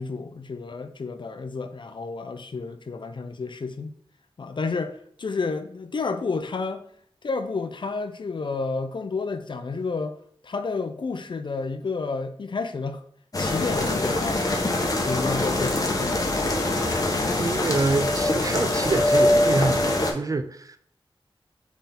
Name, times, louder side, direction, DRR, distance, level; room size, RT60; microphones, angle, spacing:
voice 1, 0.0-3.9 4.4-6.8 7.2-10.1 10.4-13.0 13.4-14.6 15.1-16.2, left 4 dB, 55° left, 0.5 m, -30 dB
sound 1, 13.3-20.1, left 1 dB, 40° left, 0.9 m, -23 dB
voice 2, 17.4-20.8, right 3 dB, 35° right, 0.4 m, -26 dB
4.2 x 3.5 x 3.5 m
wide cardioid pair, 75°, 10 cm